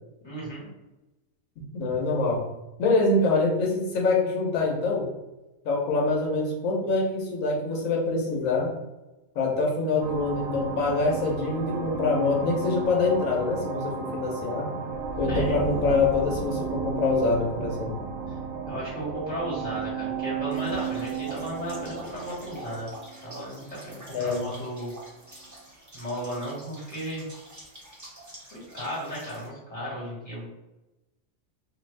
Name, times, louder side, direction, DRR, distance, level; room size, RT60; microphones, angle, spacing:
voice 1, 0.2-0.6 15.3-15.5 18.7-22.9 23.2-24.9 25.9-27.2 28.5-30.5, equal, 25° left, -8 dB, 1.6 m, -35 dB
voice 2, 1.7-2.4 2.8-5.1 5.6-8.7 9.3-14.7 15.2-18.0 24.1-24.5, left 3 dB, 80° left, -1 dB, 1.2 m, -25 dB
sound 1, 10.0-24.2, right 6 dB, 90° right, 1.0 m, -33 dB
sound 2, 20.5-29.5, right 1 dB, 25° right, 0.4 m, -47 dB
2.7 x 2.5 x 3.2 m, 1.0 s
omnidirectional pair, 1.4 m